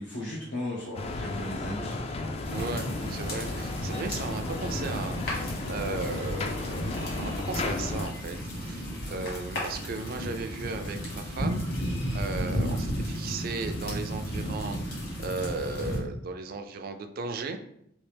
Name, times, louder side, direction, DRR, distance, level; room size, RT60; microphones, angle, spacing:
voice 1, 0.0-2.6, left 1 dB, 85° left, -6 dB, 0.8 m, -37 dB
sound 1, 0.9-8.1, left 3 dB, 30° left, 0.3 m, -34 dB
sound 2, 2.4-16.0, equal, 55° left, 1.4 m, -33 dB
voice 2, 2.5-11.9 12.1-17.6, right 3 dB, 50° right, 7 dB, 0.4 m, -36 dB
3.2 x 2.8 x 3.3 m, 0.73 s
head